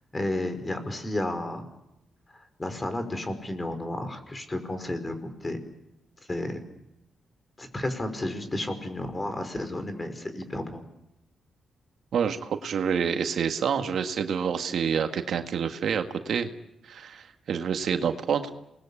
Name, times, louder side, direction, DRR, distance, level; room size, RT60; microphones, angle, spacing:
voice 1, 0.1-1.6 2.3-5.6 6.3-6.6 7.6-10.8, left 1 dB, 25° left, 8 dB, 5.1 m, -32 dB
voice 2, 12.1-16.5 16.9-18.5, right 7 dB, 70° right, 7 dB, 1.8 m, -27 dB
28.0 x 20.5 x 8.6 m, 0.87 s
cardioid pair, 65°, 0 cm